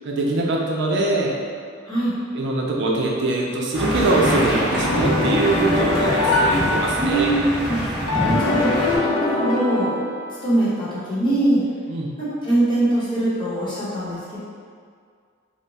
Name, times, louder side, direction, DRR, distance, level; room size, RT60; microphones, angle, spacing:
voice 1, 0.0-1.3 2.3-7.3 11.9-12.1, right 2 dB, 60° right, -2 dB, 0.4 m, -22 dB
voice 2, 1.8-2.1 7.0-7.8 8.4-9.9 10.4-11.6 12.2-14.4, right 1 dB, 25° left, -10 dB, 0.9 m, -22 dB
sound 1, 3.7-9.0, equal, 5° right, 0.9 m, -24 dB
sound 2, 4.8-7.5 8.1-10.6, left 3 dB, 90° left, 0.5 m, -24 dB
2.8 x 2.2 x 3.9 m, 2.1 s
head